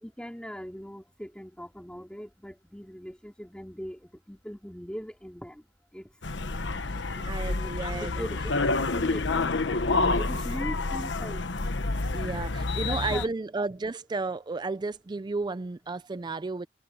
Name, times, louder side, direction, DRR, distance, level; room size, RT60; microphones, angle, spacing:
voice 1, 0.0-5.6 5.9-6.1 7.2-7.7 8.0-11.4 12.9-13.3, equal, 5° left, 2.8 m, -40 dB
sound 1, 6.2-13.3, left 3 dB, 90° left, 1.1 m, -28 dB
voice 2, 7.2-8.3 12.1-16.7, right 3 dB, 25° right, 0.4 m, -33 dB
head